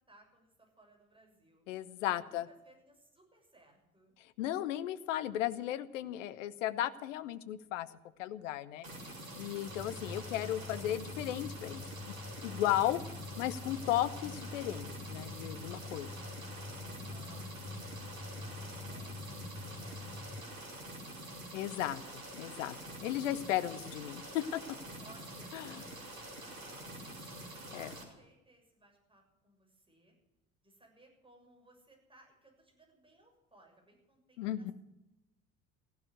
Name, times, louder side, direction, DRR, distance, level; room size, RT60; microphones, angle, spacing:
voice 1, 0.1-1.7 2.2-4.1 13.8-14.2 15.7-19.2 19.7-21.5 25.0-30.2 30.6-34.7, right 2 dB, 10° right, 1 dB, 6.9 m, -63 dB
voice 2, 1.7-2.5 4.2-7.9 8.2-8.9 9.4-12.1 12.4-13.0 13.4-16.1 21.5-22.7 23.0-24.6 25.5-25.7 27.7-27.9 34.4-34.7, left 12 dB, 65° left, 15 dB, 1.0 m, -35 dB
sound 1, 8.8-28.0, right 1 dB, 75° right, 3.0 m, -47 dB
sound 2, 9.7-20.4, left 3 dB, 15° left, 3.8 m, -46 dB
15.5 x 12.0 x 8.0 m, 0.95 s
figure-of-eight pair, 60°, 41 cm